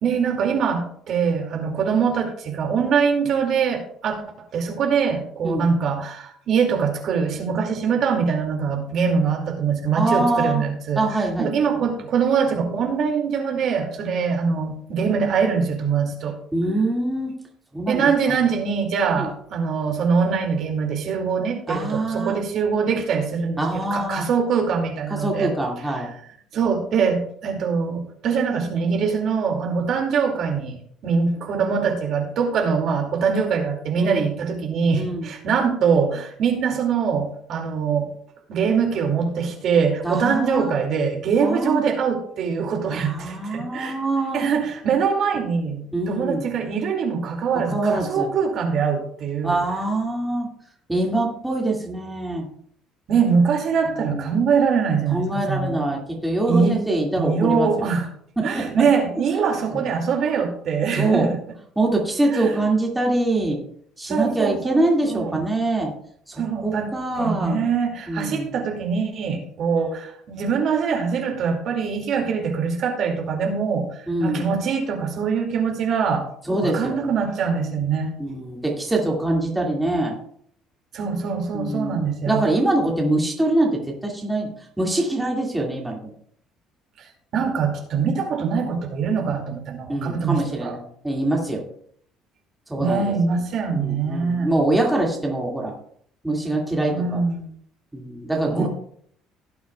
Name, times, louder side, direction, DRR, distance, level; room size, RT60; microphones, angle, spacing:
voice 1, 0.0-16.4 17.9-25.5 26.5-38.1 38.5-44.0 44.3-49.6 53.1-55.8 56.5-56.8 57.2-58.1 58.4-61.3 62.3-62.6 64.1-65.4 66.4-66.9 67.2-76.3 76.6-78.1 80.9-82.4 87.0-90.7 92.8-94.5 96.9-97.5 98.5-98.7, right 6 dB, 55° right, 2 dB, 2.4 m, -23 dB
voice 2, 10.0-10.6 11.0-11.5 16.5-17.3 17.7-18.1 19.2-19.3 21.7-22.4 23.6-24.3 25.1-26.1 34.0-34.3 35.0-35.3 40.0-40.7 41.4-41.8 42.9-44.5 45.9-46.4 47.7-48.3 49.4-50.5 50.9-52.5 53.9-54.3 55.1-57.7 58.4-58.6 59.3-59.5 61.0-61.3 61.8-63.6 64.0-65.9 66.3-67.6 68.1-68.5 74.1-74.4 76.5-77.1 78.2-80.2 81.5-84.5 84.8-86.1 89.9-91.6 92.7-93.0 93.7-95.8 96.2-97.2 97.9-98.7, right 2 dB, 5° right, -2 dB, 2.2 m, -24 dB
17.0 x 8.4 x 2.4 m, 0.64 s
cardioid pair, 130°, 0 cm